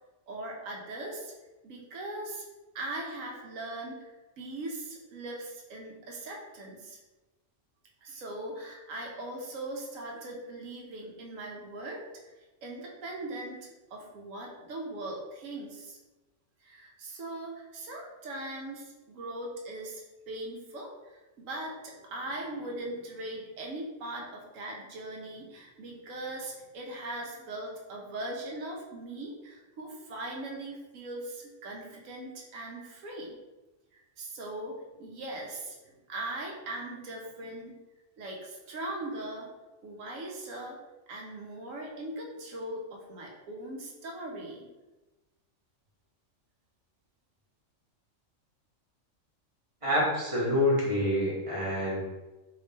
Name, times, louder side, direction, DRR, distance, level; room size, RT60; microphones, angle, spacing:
voice 1, 0.3-1.3 1.6-2.4 2.7-7.0 8.0-12.0 12.6-16.0 16.6-33.4 33.9-37.7 38.2-39.5 39.8-40.8 41.1-44.7, right 1 dB, 85° right, -1 dB, 1.1 m, -40 dB
voice 2, 49.8-52.0, left 1 dB, 30° right, -5 dB, 0.7 m, -27 dB
3.1 x 2.8 x 3.2 m, 1.1 s
omnidirectional pair, 1.3 m